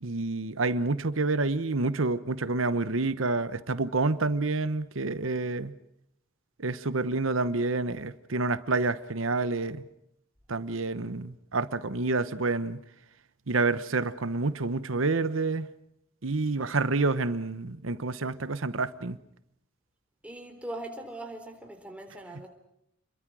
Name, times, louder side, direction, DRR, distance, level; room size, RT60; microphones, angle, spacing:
voice 1, 0.0-5.7 6.6-9.8 10.5-12.8 13.5-15.7 16.2-19.2, right 3 dB, 70° right, 1.1 m, -28 dB
voice 2, 20.2-22.5, right 1 dB, 5° right, 3.8 m, -40 dB
29.0 x 22.5 x 6.2 m
head